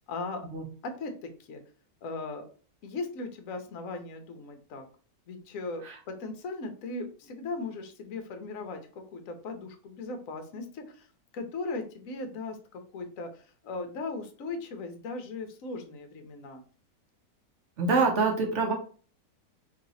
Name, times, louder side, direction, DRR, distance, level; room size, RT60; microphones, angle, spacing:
voice 1, 0.1-0.5 0.8-1.6 2.0-2.4 2.8-4.9 5.3-8.8 9.1-11.1 11.3-16.6, left 3 dB, 60° left, 7 dB, 1.0 m, -38 dB
voice 2, 17.8-18.7, right 4 dB, 55° right, 2 dB, 0.9 m, -25 dB
3.2 x 2.9 x 3.9 m, 0.40 s
omnidirectional pair, 1.9 m